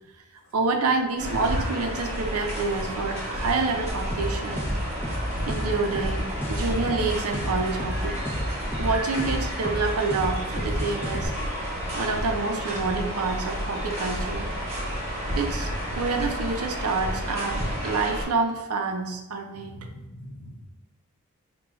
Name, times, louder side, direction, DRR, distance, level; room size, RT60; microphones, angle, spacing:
voice 1, 0.5-4.7 5.5-8.2 8.8-11.3 11.9-14.5 15.4-15.7 16.0-19.8, right 4 dB, 85° right, 4 dB, 0.5 m, -27 dB
sound 1, 1.2-18.2, equal, 30° right, 1.1 m, -31 dB
sound 2, 3.9-11.3, equal, 10° left, 0.5 m, -31 dB
voice 2, 19.6-20.7, equal, 65° left, -4 dB, 0.5 m, -43 dB
4.7 x 2.3 x 3.0 m, 0.98 s
head